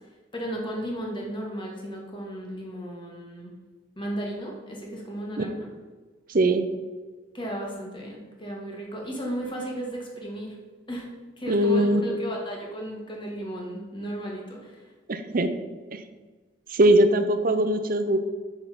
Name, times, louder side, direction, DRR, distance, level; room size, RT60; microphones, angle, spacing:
voice 1, 0.3-3.5 4.0-5.7 7.3-10.6 10.9-11.1 11.4-14.9, right 1 dB, 25° left, -1 dB, 1.8 m, -34 dB
voice 2, 6.3-6.7 11.5-12.0 15.1-15.5 15.9-16.0 16.7-18.2, right 1 dB, 50° right, 9 dB, 0.7 m, -21 dB
7.4 x 6.2 x 5.0 m, 1.3 s
head